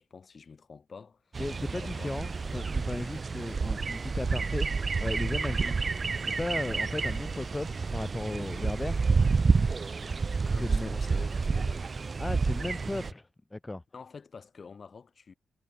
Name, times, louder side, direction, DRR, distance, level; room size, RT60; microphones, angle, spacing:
voice 1, 0.0-1.4 1.7-2.1 4.4-4.5 10.5-11.9 13.9-15.3, left 5 dB, 50° left, 1.9 m, -48 dB
sound 1, 1.3-13.1, right 4 dB, 40° right, 0.6 m, -29 dB
voice 2, 1.4-5.9 6.4-9.0 10.5-10.9 12.2-13.8, left 2 dB, 15° left, 0.5 m, -36 dB
cardioid pair, 90°, 0 cm